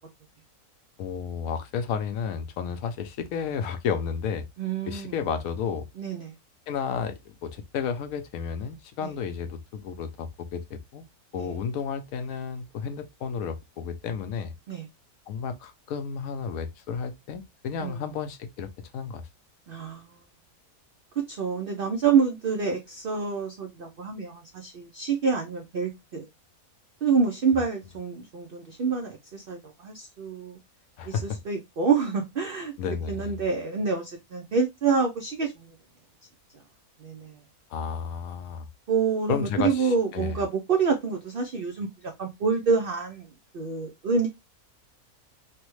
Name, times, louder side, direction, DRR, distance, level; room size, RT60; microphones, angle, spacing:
voice 1, 1.0-4.4 4.9-5.9 6.7-11.1 11.3-14.5 15.3-19.2 31.0-31.4 32.8-33.4 37.7-38.7 39.3-40.4, left 6 dB, 75° left, 1.0 m, -32 dB
voice 2, 4.6-5.1 6.0-6.3 9.0-9.1 11.3-11.5 14.7-14.9 17.8-18.0 19.7-20.3 21.2-26.3 27.0-30.6 31.1-32.7 33.1-35.7 37.0-37.4 38.9-43.3 43.5-44.3, right 5 dB, 75° right, 0.5 m, -27 dB
3.3 x 2.1 x 3.0 m
omnidirectional pair, 1.6 m